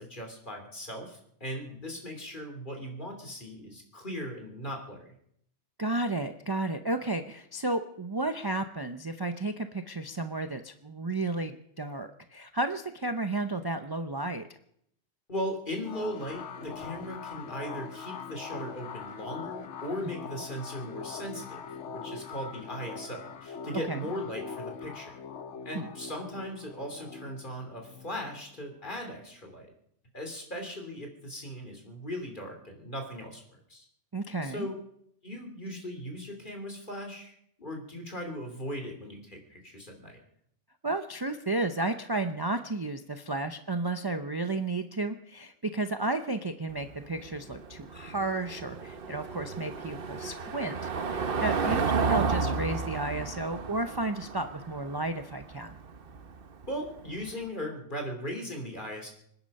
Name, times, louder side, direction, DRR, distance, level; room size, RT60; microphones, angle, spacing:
voice 1, 0.0-5.1 15.3-25.1 25.6-29.7 30.1-33.4 33.7-33.8 34.4-34.7 35.2-37.3 37.6-40.2 51.6-51.8 56.7-59.1, equal, 45° left, 3 dB, 3.1 m, -38 dB
voice 2, 5.8-14.5 23.9-24.0 25.7-25.9 34.1-34.7 40.8-50.8 51.1-55.8, right 2 dB, 25° right, 8 dB, 0.6 m, -32 dB
sound 1, 15.8-29.0, left 5 dB, 85° left, 1.3 m, -42 dB
Car passing by / Engine, 46.7-57.3, right 5 dB, 55° right, 1.2 m, -33 dB
25.5 x 10.0 x 5.4 m, 0.72 s
omnidirectional pair, 1.2 m